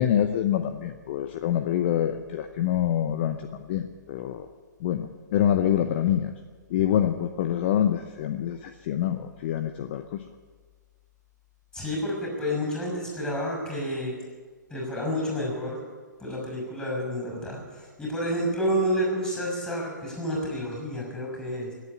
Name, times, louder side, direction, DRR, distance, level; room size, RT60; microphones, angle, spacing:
voice 1, 0.0-4.5 4.8-6.3 6.7-10.3, left 10 dB, 35° left, 9 dB, 0.7 m, -26 dB
voice 2, 11.7-14.1 14.7-15.8 16.2-21.7, equal, 10° left, -1 dB, 5.8 m, -29 dB
17.0 x 8.4 x 9.5 m, 1.5 s
figure-of-eight pair, 125°, 10 cm